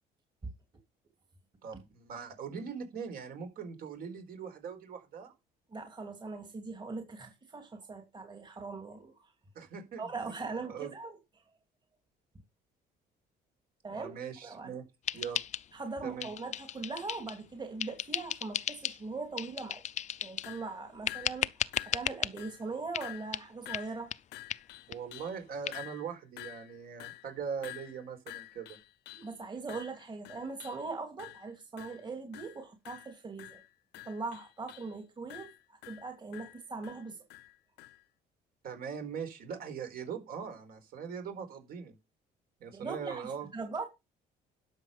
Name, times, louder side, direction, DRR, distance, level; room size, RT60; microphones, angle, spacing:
voice 1, 1.6-5.3 9.5-10.1 10.5-10.9 13.9-14.8 15.1-15.4 16.0-16.3 24.9-28.8 38.6-41.9 42.6-43.5, right 6 dB, 60° right, 4.5 m, -41 dB
voice 2, 5.7-9.3 10.0-11.2 13.8-14.7 15.7-19.8 20.2-21.5 21.8-24.1 29.2-33.6 34.0-37.2 42.7-43.8, right 3 dB, 25° right, 2.8 m, -41 dB
sound 1, 15.1-15.9 16.2-17.4 17.8-19.0 19.4-20.5 21.1-22.3 22.9-23.1 23.3-23.5 23.7-23.9 24.1-24.2 24.5-24.6 24.9-25.0 25.3-25.4 25.7-25.8, left 10 dB, 45° left, 0.6 m, -35 dB
sound 2, 20.4-20.7 21.1-21.5 21.7-22.1 22.4-22.7 23.0-23.4 23.7-25.4 25.7-29.3 29.7-30.9 31.2-31.5 31.8-32.1 32.3-32.6 32.9-34.9 35.3-38.0, left 17 dB, 90° left, 0.9 m, -48 dB
11.5 x 6.7 x 5.1 m
cardioid pair, 110°, 17 cm